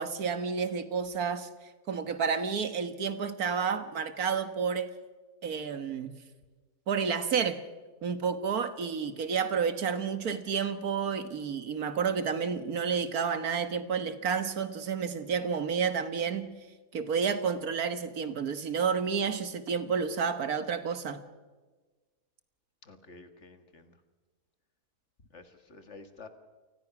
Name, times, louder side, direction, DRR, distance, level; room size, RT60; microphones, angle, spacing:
voice 1, 0.0-1.5 1.9-4.9 5.4-6.2 6.9-7.6 8.0-16.5 16.9-21.2, right 6 dB, 70° right, 10 dB, 1.8 m, -30 dB
voice 2, 22.8-24.0 25.3-26.3, left 3 dB, 45° left, 8 dB, 1.9 m, -50 dB
28.5 x 20.0 x 6.0 m, 1.3 s
omnidirectional pair, 1.7 m